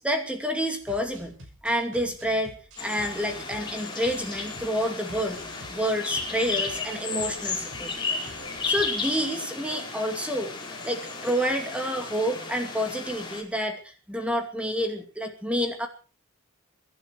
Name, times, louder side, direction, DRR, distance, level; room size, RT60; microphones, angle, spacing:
voice 1, 0.0-1.3 1.6-5.4 5.7-7.9 8.6-10.5 10.8-15.9, equal, 5° right, 5 dB, 2.5 m, -29 dB
sound 1, 0.9-9.2, right 1 dB, 60° right, 6.3 m, -48 dB
sound 2, 2.8-13.4, left 4 dB, 20° left, 5.0 m, -34 dB
24.5 x 11.5 x 4.7 m, 0.37 s
head